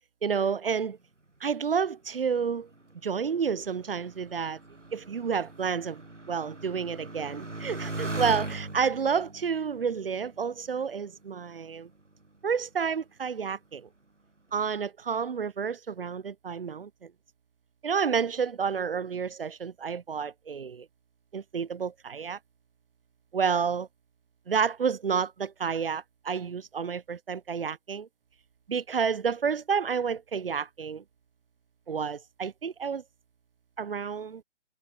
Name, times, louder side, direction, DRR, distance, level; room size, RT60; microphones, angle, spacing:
voice 1, 0.2-1.0 1.4-2.7 3.0-4.6 4.9-6.0 6.3-11.9 12.4-13.9 14.5-17.1 17.8-20.9 21.3-22.4 23.3-23.9 24.5-28.1 28.7-31.0 31.9-33.0 33.8-34.4, right 6 dB, 50° right, 0.9 m, -30 dB
Motorcycle, 2.3-11.2 12.0-12.6, right 2 dB, 80° right, 7.0 m, -40 dB
figure-of-eight pair, 140°, 36 cm